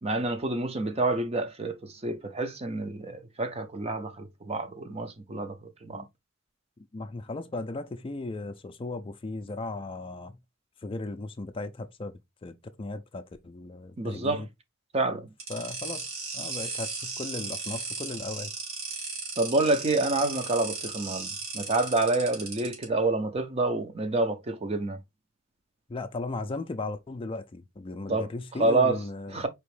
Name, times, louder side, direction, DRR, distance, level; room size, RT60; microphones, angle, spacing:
voice 1, 0.0-6.0 14.0-14.4 14.9-15.3 19.4-21.3 21.5-25.0 28.1-28.3 28.6-29.0 29.3-29.5, right 2 dB, 30° right, 0.6 m, -28 dB
voice 2, 6.9-10.4 10.8-12.1 12.4-14.5 15.5-16.1 16.3-18.5 25.9-29.5, left 2 dB, 25° left, 0.4 m, -36 dB
sound 1, 15.4-22.8, right 4 dB, 80° right, 2.3 m, -36 dB
4.5 x 3.0 x 3.2 m
head